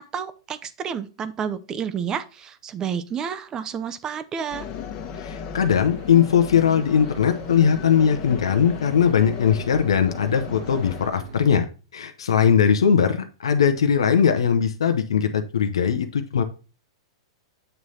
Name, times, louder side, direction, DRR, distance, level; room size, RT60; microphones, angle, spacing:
voice 1, 0.1-4.7, right 7 dB, 25° right, 14 dB, 0.7 m, -30 dB
sound 1, 4.5-11.1, left 7 dB, 40° left, 1.2 m, -36 dB
voice 2, 5.2-11.7 11.9-16.4, left 7 dB, 85° left, 7 dB, 0.8 m, -20 dB
Boat Water vehicle / Engine, 5.9-11.5, right 6 dB, 70° right, 1.5 m, -43 dB
8.1 x 3.2 x 5.6 m, 0.35 s
hypercardioid pair, 130°, 3 cm